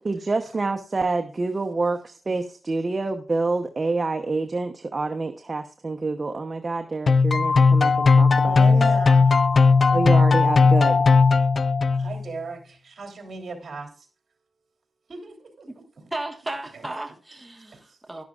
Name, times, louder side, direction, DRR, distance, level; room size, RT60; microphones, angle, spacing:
voice 1, 0.0-8.8 9.9-11.0, right 3 dB, 35° right, 5 dB, 0.9 m, -27 dB
sound 1, 7.1-12.2, left 4 dB, 50° left, 0.4 m, -17 dB
voice 2, 8.4-9.4 11.9-14.1 15.1-16.0 16.7-16.9 17.7-18.0, right 4 dB, 60° right, 3 dB, 3.1 m, -37 dB
voice 3, 16.1-18.2, right 2 dB, 10° right, 3 dB, 1.5 m, -34 dB
12.0 x 11.5 x 2.5 m, 0.40 s
wide cardioid pair, 105°, 0 cm